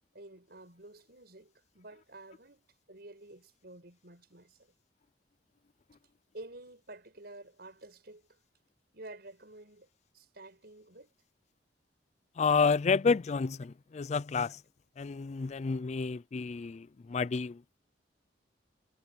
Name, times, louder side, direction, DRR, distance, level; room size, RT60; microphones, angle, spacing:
voice 1, 0.1-4.7 6.3-8.4 8.9-9.9 10.1-11.1, right 2 dB, 60° right, 6.5 m, -50 dB
voice 2, 12.4-14.6 15.0-17.8, left 5 dB, 40° left, 0.4 m, -30 dB
head